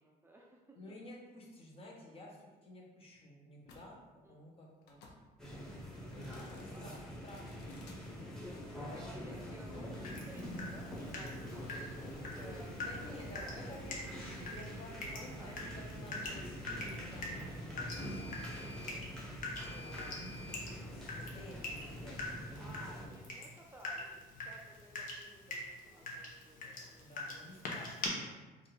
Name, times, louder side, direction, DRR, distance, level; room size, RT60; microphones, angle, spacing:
voice 1, 0.0-0.8 4.2-4.4 6.5-7.6 8.8-13.7 14.9-15.7 16.2-16.4 19.8-20.1 22.6-27.7, right 1 dB, 15° right, -1 dB, 0.5 m, -57 dB
voice 2, 0.7-5.0 6.1-7.8 8.7-9.5 12.8-19.0 19.5-23.2 27.0-28.7, left 1 dB, 35° left, -2 dB, 1.1 m, -53 dB
sound 1, 3.6-3.8 4.8-5.2 6.1-6.8 7.3-8.0 9.6-20.6, left 1 dB, 80° left, 0.8 m, -54 dB
sound 2, 5.4-23.1, equal, 5° left, 1.2 m, -45 dB
Water tap faucet / Drip, 10.0-28.1, left 2 dB, 55° left, 1.0 m, -45 dB
5.2 x 2.6 x 3.5 m, 1.2 s
cardioid pair, 110°, 17 cm